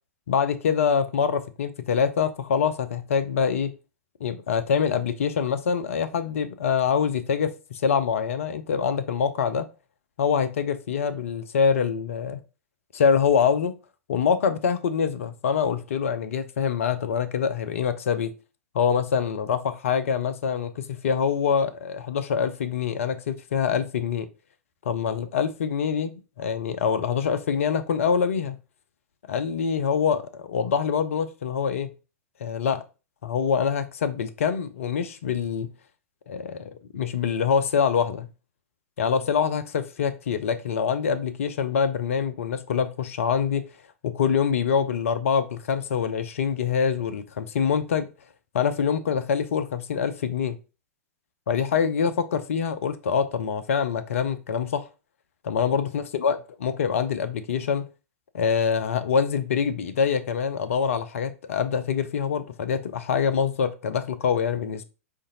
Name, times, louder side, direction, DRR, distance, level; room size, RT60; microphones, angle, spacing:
voice 1, 0.3-3.7 4.2-9.6 10.2-12.4 12.9-13.8 14.1-18.3 18.7-24.3 24.8-28.5 29.3-31.9 32.4-32.8 33.2-35.7 36.3-38.3 39.0-43.6 44.0-48.1 48.5-50.6 51.5-54.9 55.4-57.9 58.3-64.8, left 6 dB, 65° left, 0.5 m, -25 dB
5.0 x 2.6 x 3.9 m
figure-of-eight pair, 100°, 8 cm